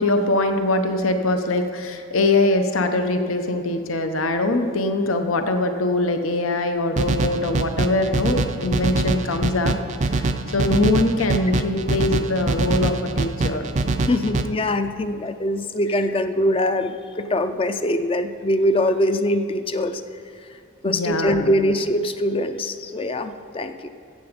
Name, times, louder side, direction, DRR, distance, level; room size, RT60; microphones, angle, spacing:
voice 1, 0.0-9.8 10.0-13.6 20.8-21.5, left 2 dB, 85° left, 6 dB, 0.8 m, -22 dB
sound 1, 7.0-14.4, right 3 dB, 35° right, 0.4 m, -24 dB
voice 2, 14.1-20.0 20.8-23.9, left 1 dB, 25° left, 9 dB, 0.4 m, -23 dB
14.0 x 8.0 x 5.1 m, 2.5 s
head